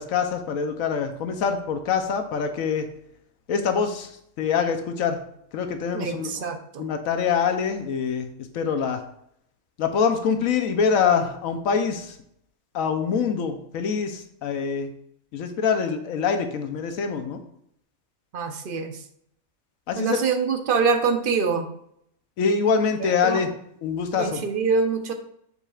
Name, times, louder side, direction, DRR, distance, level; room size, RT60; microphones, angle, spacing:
voice 1, 0.0-2.9 3.5-4.1 4.4-5.2 5.5-6.3 6.8-9.0 9.8-12.1 12.7-14.9 15.3-17.4 19.9-20.2 22.4-23.5 23.8-24.4, left 6 dB, 80° left, 7 dB, 1.1 m, -24 dB
voice 2, 5.9-6.9 18.3-19.0 19.9-21.7 23.0-23.4 24.2-25.1, right 5 dB, 50° right, 6 dB, 0.7 m, -25 dB
7.2 x 5.4 x 2.4 m, 0.70 s
omnidirectional pair, 1.4 m